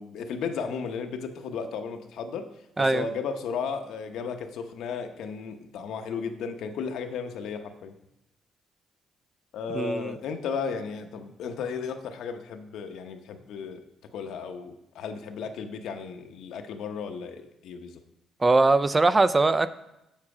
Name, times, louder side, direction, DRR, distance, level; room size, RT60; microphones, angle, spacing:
voice 1, 0.0-2.5 2.8-7.9 9.5-13.8 14.1-18.0, left 5 dB, 80° left, 7 dB, 0.8 m, -34 dB
voice 2, 9.7-10.2 18.4-19.7, right 3 dB, 25° right, 13 dB, 0.4 m, -21 dB
7.4 x 7.3 x 4.8 m, 0.89 s
cardioid pair, 90°, 0 cm